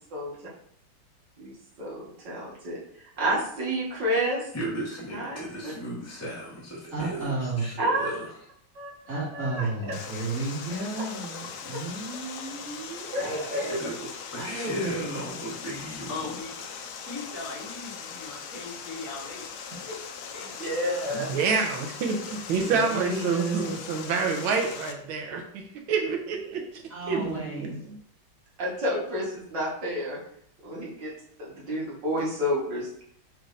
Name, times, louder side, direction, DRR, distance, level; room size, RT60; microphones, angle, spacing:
voice 1, 1.4-4.5 5.1-5.4 7.8-8.2 8.7-8.9 9.3-9.7 13.1-13.6 20.4-21.3 28.6-30.2 30.6-31.1 31.4-32.9, equal, 65° right, -5 dB, 2.1 m, -30 dB
voice 2, 4.5-7.3 7.6-8.3 13.7-16.9, right 1 dB, 15° left, -5 dB, 0.6 m, -36 dB
voice 3, 6.9-7.7 9.1-13.7 14.4-15.2 22.6-23.8 26.9-27.7, right 2 dB, 40° right, -8 dB, 2.5 m, -32 dB
Water, 9.9-24.9, left 6 dB, 70° left, 0.9 m, -40 dB
voice 4, 16.1-16.5 17.1-19.4 19.7-20.0 20.3-20.9, left 3 dB, 50° left, -2 dB, 1.3 m, -39 dB
voice 5, 21.1-26.6 27.1-27.8, right 5 dB, 90° right, 3 dB, 1.5 m, -28 dB
4.8 x 4.3 x 2.6 m, 0.64 s
omnidirectional pair, 2.2 m